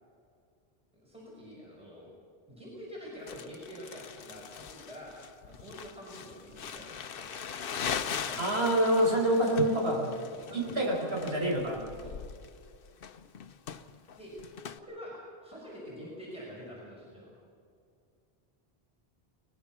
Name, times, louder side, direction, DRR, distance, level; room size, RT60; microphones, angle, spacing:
voice 1, 1.0-2.1 2.5-7.3 8.2-8.7 10.3-11.5 12.0-12.2 14.1-14.4 14.8-15.2 15.4-17.3, equal, 5° right, -5 dB, 5.7 m, -46 dB
Crumpling crinkling, 3.3-14.8, left 7 dB, 65° left, 0.9 m, -40 dB
voice 2, 8.4-10.1 10.5-11.8, right 1 dB, 80° right, -1 dB, 5.1 m, -27 dB
22.5 x 20.0 x 6.0 m, 2.3 s
omnidirectional pair, 1.0 m